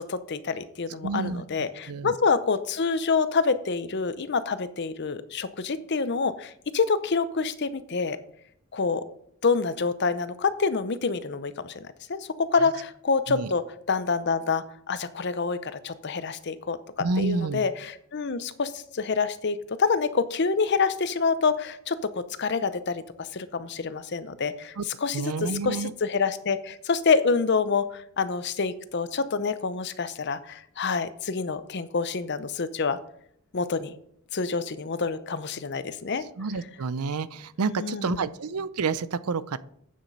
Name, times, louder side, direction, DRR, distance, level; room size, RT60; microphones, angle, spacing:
voice 1, 0.0-8.2 8.7-9.0 9.4-33.0 33.5-33.9 34.3-36.2 37.6-38.3, left 4 dB, 50° left, 13 dB, 0.6 m, -27 dB
voice 2, 1.0-1.4 1.9-2.2 13.3-13.5 17.0-17.6 24.8-24.9 25.1-25.9 36.4-39.6, right 4 dB, 85° right, 16 dB, 0.5 m, -29 dB
8.6 x 7.3 x 5.3 m, 0.70 s
head